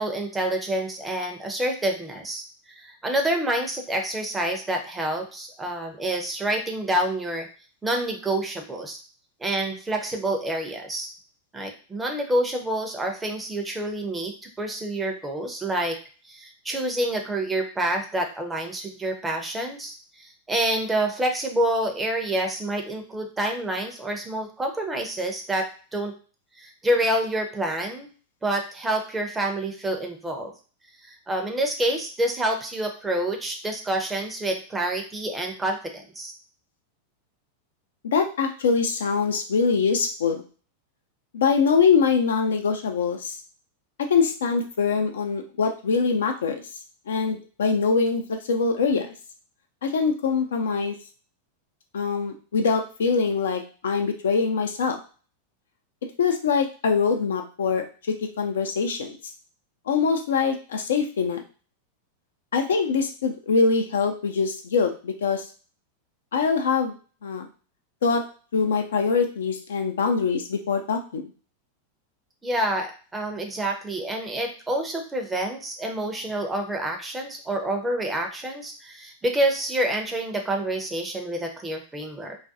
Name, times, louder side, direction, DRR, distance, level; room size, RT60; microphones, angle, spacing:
voice 1, 0.0-7.5 7.8-9.0 9.4-11.1 11.5-16.0 16.2-26.1 26.6-28.1 28.4-30.5 31.0-36.3 72.4-82.4, right 1 dB, 10° right, 3 dB, 0.5 m, -27 dB
voice 2, 38.0-40.4 41.3-43.3 44.1-46.6 47.1-49.1 49.8-51.0 51.9-55.0 56.2-59.2 59.9-61.4 62.5-65.4 66.3-66.9 67.2-67.5 68.0-68.2 68.5-71.2, left 5 dB, 65° left, 5 dB, 0.4 m, -23 dB
2.4 x 2.2 x 2.7 m, 0.38 s
figure-of-eight pair, 90°, 0 cm